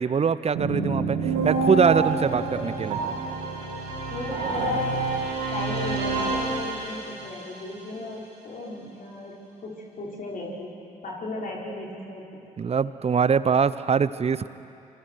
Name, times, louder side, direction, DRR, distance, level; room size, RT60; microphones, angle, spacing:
voice 1, 0.0-3.0 12.6-14.5, right 6 dB, 35° right, 16 dB, 0.8 m, -23 dB
sound 1, 0.5-7.3, right 3 dB, 75° right, 6.6 m, -27 dB
voice 2, 2.1-2.8 4.1-4.9 5.5-9.3 9.6-10.7 11.0-12.4, left 2 dB, 50° left, -4 dB, 5.1 m, -36 dB
27.5 x 26.0 x 4.7 m, 2.7 s
figure-of-eight pair, 40°, 18 cm